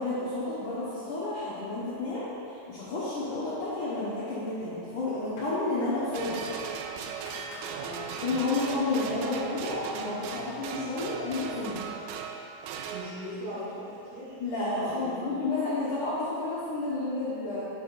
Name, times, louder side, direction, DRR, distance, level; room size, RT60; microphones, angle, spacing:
voice 1, 0.0-6.4 8.2-11.8 14.4-17.6, left 2 dB, 80° left, -10 dB, 1.8 m, -31 dB
sound 1, 2.9-3.6 4.0-6.8 7.3-7.8 8.1-8.3 8.6-8.8, left 1 dB, 60° left, 2.0 m, -50 dB
sound 2, 6.1-13.6 14.5-14.6, right 6 dB, 85° right, 2.5 m, -38 dB
voice 2, 7.7-8.7 12.9-14.3 14.8-15.4, equal, 65° right, -10 dB, 1.8 m, -40 dB
7.5 x 6.2 x 4.2 m, 2.6 s
omnidirectional pair, 5.4 m